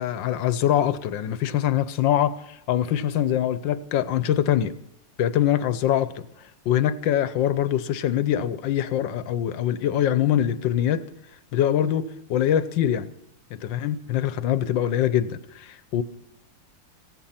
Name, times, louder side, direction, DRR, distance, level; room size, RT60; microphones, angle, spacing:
voice 1, 0.0-4.7 5.2-6.2 6.6-11.0 11.5-13.1 13.5-16.0, left 10 dB, 70° left, 15 dB, 1.5 m, -23 dB
16.0 x 15.5 x 5.8 m, 0.76 s
omnidirectional pair, 2.1 m